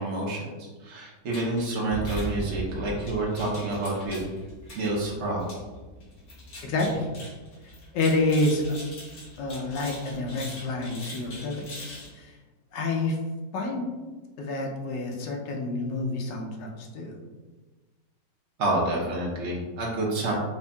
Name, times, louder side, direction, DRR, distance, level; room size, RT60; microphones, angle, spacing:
voice 1, 0.0-4.3 4.7-5.5 18.6-20.3, right 2 dB, 50° right, -4 dB, 0.9 m, -28 dB
sound 1, 1.3-12.1, equal, 60° left, 1.4 m, -40 dB
voice 2, 6.6-7.1 7.9-8.8 9.4-12.4 12.7-13.2 13.5-13.9 14.4-17.2, left 2 dB, 80° left, 1 dB, 1.2 m, -28 dB
4.3 x 2.6 x 2.2 m, 1.3 s
omnidirectional pair, 1.9 m